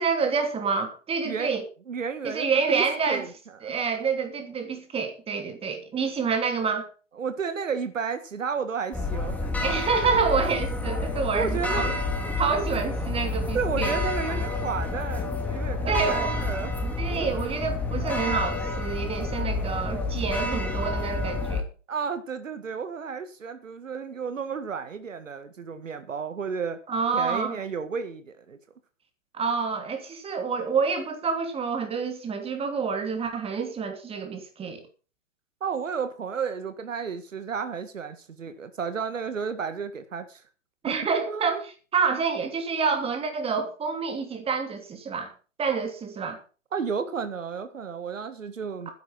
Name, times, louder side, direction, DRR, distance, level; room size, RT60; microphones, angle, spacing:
voice 1, 0.0-1.6 2.2-3.3 3.6-6.9 9.6-11.9 12.4-14.0 15.9-16.3 17.0-21.6 26.9-27.6 29.3-34.8 40.8-45.3 45.6-46.4, right 5 dB, 15° right, 3.0 m, -28 dB
voice 2, 1.9-3.3 3.6-3.7 7.2-9.5 11.3-12.0 13.5-16.7 17.2-17.3 21.9-26.8 27.1-28.6 35.6-40.4 40.9-41.0 41.3-41.6 46.7-48.9, right 6 dB, 80° right, 1.8 m, -32 dB
sound 1, 8.9-21.6, left 2 dB, 5° left, 2.6 m, -29 dB
12.0 x 10.5 x 5.7 m
hypercardioid pair, 125°, 38 cm